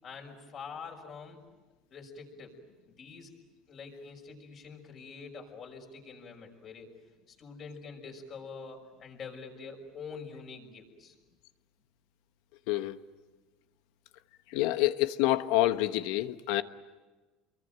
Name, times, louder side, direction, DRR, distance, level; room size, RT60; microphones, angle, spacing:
voice 1, 0.0-1.4 1.9-2.6 2.9-3.3 3.7-6.9 7.3-11.1, left 5 dB, 40° left, 6.0 m, -45 dB
voice 2, 12.7-13.0 14.5-16.6, left 16 dB, 75° left, 1.2 m, -27 dB
29.0 x 23.0 x 9.1 m
cardioid pair, 130°, 0 cm